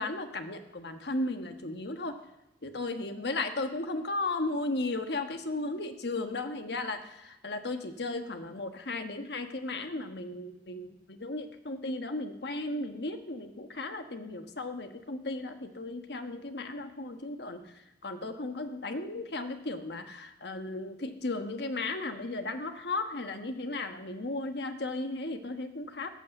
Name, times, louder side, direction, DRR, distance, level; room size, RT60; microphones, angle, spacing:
voice 1, 0.0-2.2 2.6-26.1, left 2 dB, 70° left, 7 dB, 1.3 m, -35 dB
13.5 x 8.4 x 7.9 m, 0.89 s
head